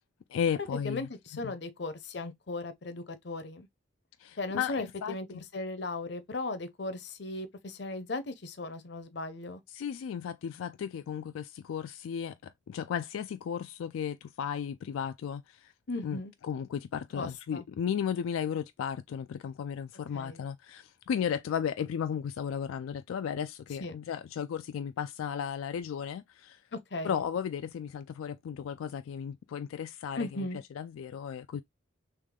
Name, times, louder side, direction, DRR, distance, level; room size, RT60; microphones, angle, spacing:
voice 1, 0.3-1.1 1.4-1.5 4.2-5.4 9.7-15.7 16.0-16.2 16.4-26.6 27.0-30.5 30.8-31.6, left 8 dB, 85° left, 0.3 m, -35 dB
voice 2, 0.8-3.7 4.4-9.6 15.9-16.3 17.1-17.6 20.1-20.4 23.8-24.0 26.7-27.2 30.2-30.6, left 2 dB, 55° left, 0.7 m, -37 dB
3.5 x 3.1 x 3.6 m
head